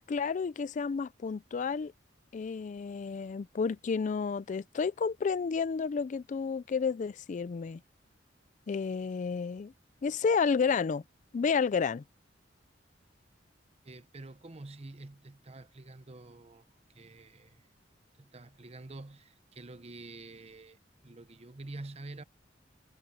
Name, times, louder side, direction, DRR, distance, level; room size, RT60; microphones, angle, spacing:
voice 1, 0.0-1.9 2.3-7.8 8.7-9.7 10.0-11.0 11.3-12.0, left 5 dB, 40° left, 0.3 m, -31 dB
voice 2, 13.8-16.7 16.9-17.6 18.2-20.8 21.0-22.2, right 2 dB, 35° right, 0.8 m, -47 dB
head